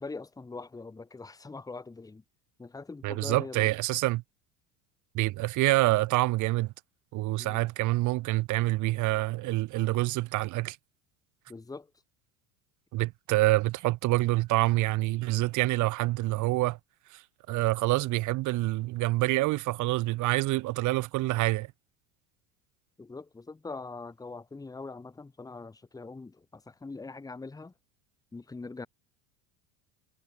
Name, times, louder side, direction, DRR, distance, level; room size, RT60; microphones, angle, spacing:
voice 1, 0.0-2.2 2.6-3.7 7.4-7.7 11.5-11.9 23.0-27.7 28.3-28.9, left 3 dB, 10° left, 1.6 m, -42 dB
voice 2, 3.0-4.2 5.1-6.7 7.1-10.8 12.9-16.8 17.1-17.2 17.5-21.7, right 19 dB, 45° right, 1.2 m, -27 dB
supercardioid pair, 140°, 40 cm